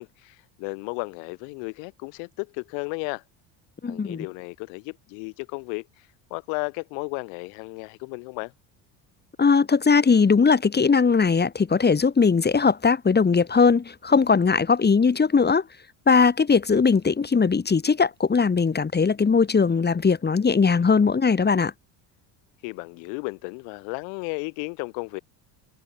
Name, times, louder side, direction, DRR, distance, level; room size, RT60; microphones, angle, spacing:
voice 1, 0.0-3.2 3.9-5.9 6.3-8.5 22.6-25.2, left 40 dB or more, 80° left, 2.3 m, -34 dB
voice 2, 3.8-4.2 9.4-15.6 16.1-21.7, left 5 dB, 20° left, 2.8 m, -20 dB
supercardioid pair, 105°, 44 cm